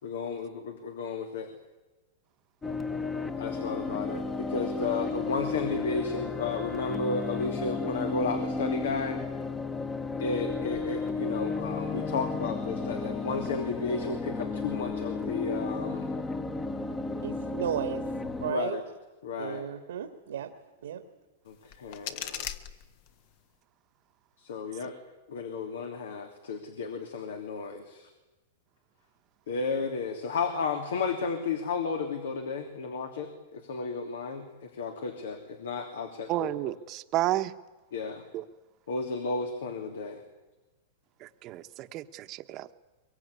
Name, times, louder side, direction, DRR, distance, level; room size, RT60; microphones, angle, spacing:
voice 1, 0.0-1.5 3.4-9.2 10.2-16.1 18.5-18.8 19.2-19.7 21.5-22.5 24.4-24.9 25.3-28.1 29.5-36.7 37.9-38.2 38.9-40.2, left 4 dB, 85° left, 6 dB, 3.1 m, -33 dB
sound 1, 2.6-18.5, left 3 dB, 15° left, 1.2 m, -33 dB
voice 2, 17.2-18.0 18.4-18.8 19.4-20.5 20.8-21.0, right 9 dB, 85° right, 5 dB, 2.0 m, -34 dB
sound 2, 21.5-23.4, left 10 dB, 50° left, 1.5 m, -40 dB
voice 3, 36.3-37.5 38.3-38.4 41.2-42.7, right 15 dB, 35° right, 10 dB, 1.2 m, -31 dB
23.0 x 22.5 x 9.8 m, 1.1 s
supercardioid pair, 145°, 0 cm